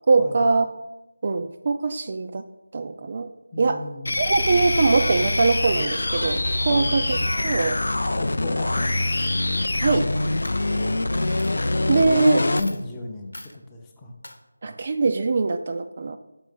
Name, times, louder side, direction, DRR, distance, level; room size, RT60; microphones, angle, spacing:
voice 1, 0.1-0.7 1.2-2.4 2.7-3.3 3.6-3.8 4.2-7.2 7.4-7.8 9.7-10.1 10.7-11.5 11.9-12.4 14.6-16.2, right 4 dB, 35° right, 7 dB, 0.3 m, -22 dB
voice 2, 3.5-4.2 6.7-7.0 8.2-9.1 9.9-10.1 12.0-14.1, left 2 dB, 10° left, 0 dB, 0.6 m, -35 dB
sound 1, 4.1-12.7, left 2 dB, 65° left, 0.4 m, -24 dB
sound 2, 4.7-8.2, right 1 dB, 80° right, 0.8 m, -39 dB
Coin (dropping), 9.8-10.1 10.4-11.0 11.4-11.5 12.3-12.4 12.5-12.8 13.3-13.6 14.2-14.4, left 1 dB, 85° left, 1.1 m, -41 dB
6.2 x 5.6 x 5.3 m, 0.96 s
figure-of-eight pair, 170°, 0 cm